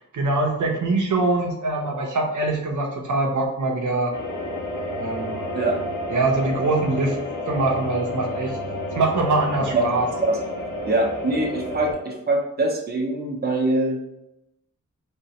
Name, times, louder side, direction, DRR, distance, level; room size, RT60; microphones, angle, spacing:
voice 1, 0.1-4.1 5.0-5.5 6.1-7.2 7.5-8.6 8.9-10.1, right 2 dB, 75° right, 0 dB, 0.7 m, -23 dB
sound 1, 4.1-11.9, left 1 dB, 85° left, 1.5 m, -31 dB
voice 2, 10.8-14.0, right 2 dB, 30° right, -1 dB, 0.9 m, -23 dB
4.4 x 3.2 x 2.9 m, 0.86 s
wide cardioid pair, 115°, 31 cm